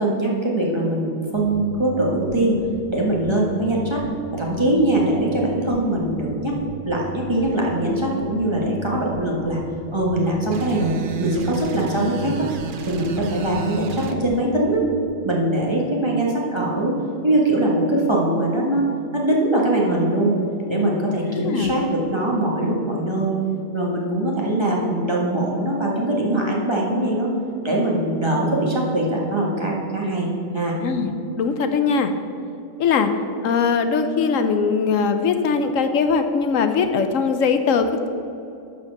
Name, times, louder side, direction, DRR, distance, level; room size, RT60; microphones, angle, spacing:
voice 1, 0.0-2.6 2.9-4.0 4.3-6.6 6.9-9.6 9.9-10.9 11.2-12.5 12.9-14.8 15.2-17.0 17.2-18.9 19.1-20.4 20.7-23.4 23.7-27.3 27.6-30.3 30.5-30.8, right 1 dB, 20° right, -3 dB, 1.8 m, -22 dB
sound 1, 1.3-15.0, right 6 dB, 50° left, 1.7 m, -38 dB
sound 2, 10.5-14.2, right 6 dB, 50° right, 0.7 m, -32 dB
voice 2, 21.3-21.7 30.8-32.1 32.8-33.1 33.4-38.1, left 5 dB, 80° left, 8 dB, 1.1 m, -21 dB
12.0 x 4.9 x 6.6 m, 2.6 s
omnidirectional pair, 1.4 m